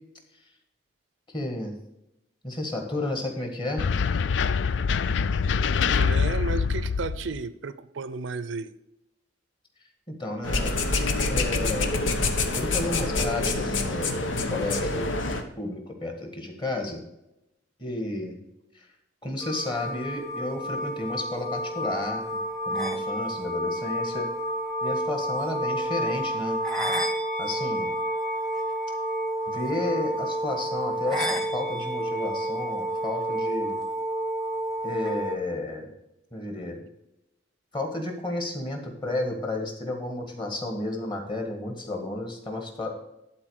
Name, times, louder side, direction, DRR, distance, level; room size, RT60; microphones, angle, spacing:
voice 1, 1.3-1.8 2.4-3.9 10.2-10.7 11.3-11.9 12.5-15.1 15.6-17.0 17.8-18.4 18.7-18.9 19.2-22.2 22.7-24.3 24.8-26.6 27.4-27.9 29.5-33.8 34.8-35.9 36.3-36.8 37.7-43.0, left 2 dB, 25° left, 3 dB, 1.7 m, -32 dB
sound 1, 3.8-7.4, left 5 dB, 70° left, 0.4 m, -24 dB
voice 2, 6.0-8.7, right 4 dB, 80° right, 15 dB, 0.5 m, -33 dB
sound 2, 10.4-15.4, left 2 dB, 85° left, 1.1 m, -26 dB
sound 3, 19.4-35.4, right 1 dB, 5° left, 1.1 m, -30 dB
11.5 x 4.1 x 6.4 m, 0.88 s
head